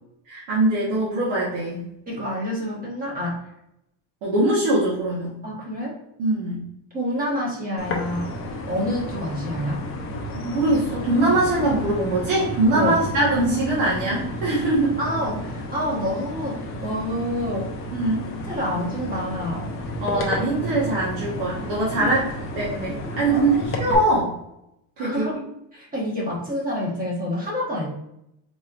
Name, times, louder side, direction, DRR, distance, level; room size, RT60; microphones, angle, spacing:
voice 1, 0.3-1.8 4.2-5.4 6.2-6.6 10.3-14.9 17.9-18.2 20.0-22.2 22.6-24.3 25.0-25.3, right 2 dB, 85° right, -6 dB, 1.3 m, -22 dB
voice 2, 2.1-3.4 5.4-5.9 6.9-8.3 8.7-9.8 12.7-13.0 15.0-17.7 18.5-19.7 22.0-22.2 23.3-23.4 25.0-25.4 25.7-27.9, equal, 20° right, -3 dB, 1.2 m, -27 dB
sound 1, 7.8-24.0, left 1 dB, 30° left, 0.6 m, -32 dB
4.2 x 3.2 x 2.4 m, 0.81 s
cardioid pair, 160°, 43 cm